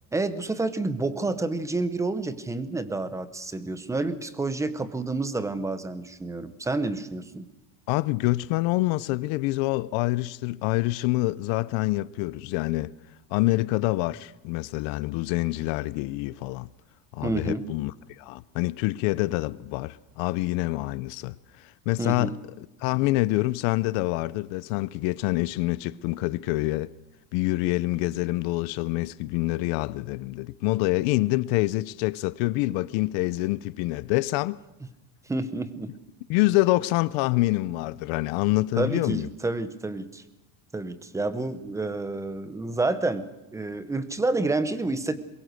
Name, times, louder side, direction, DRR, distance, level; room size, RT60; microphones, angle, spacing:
voice 1, 0.1-7.5 17.2-17.6 22.0-22.4 35.3-35.9 38.8-40.2 40.7-45.2, right 2 dB, 5° right, 0.7 m, -29 dB
voice 2, 7.9-12.9 13.3-16.7 17.1-22.3 22.8-26.9 27.3-34.6 36.3-39.3, left 19 dB, 65° left, 0.7 m, -26 dB
22.5 x 21.5 x 6.4 m
cardioid pair, 175°, 48 cm